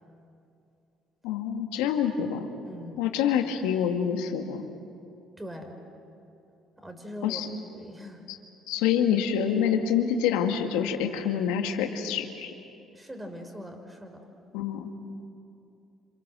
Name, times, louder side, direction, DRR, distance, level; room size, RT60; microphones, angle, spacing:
voice 1, 1.2-2.5 3.0-4.6 7.2-7.5 8.3-8.4 8.7-12.5 14.5-14.9, left 8 dB, 85° left, 4 dB, 2.1 m, -26 dB
voice 2, 2.6-3.1 5.4-5.8 6.8-8.2 12.9-14.3, left 1 dB, 15° right, 5 dB, 5.4 m, -41 dB
28.5 x 27.0 x 7.7 m, 2.6 s
supercardioid pair, 65°, 0 cm